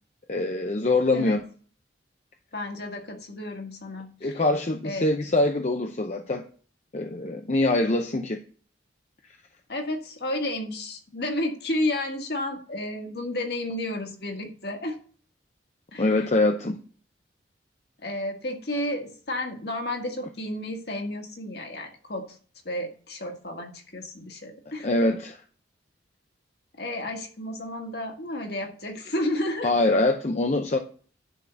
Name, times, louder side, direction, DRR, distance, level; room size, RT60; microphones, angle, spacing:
voice 1, 0.3-1.4 4.2-6.4 6.9-8.4 16.0-16.8 24.8-25.4 29.6-30.8, left 2 dB, 35° left, 0.6 m, -24 dB
voice 2, 2.5-4.4 4.8-5.1 9.7-15.0 15.9-16.2 18.0-22.3 22.7-24.9 26.8-29.7, left 1 dB, 55° left, 1.7 m, -32 dB
11.0 x 3.8 x 7.0 m
head